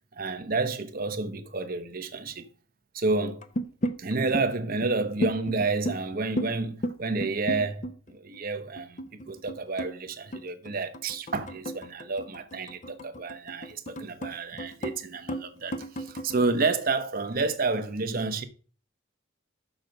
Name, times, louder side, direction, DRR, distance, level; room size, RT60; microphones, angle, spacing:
voice 1, 0.1-2.4 2.9-3.4 4.0-18.4, right 3 dB, 45° right, 0.9 m, -30 dB
sound 1, 3.4-4.4 4.8-4.9 5.2-6.5 6.8-8.4 8.8-15.0 15.3-16.4, equal, 35° left, 0.7 m, -34 dB
6.4 x 6.2 x 5.2 m
head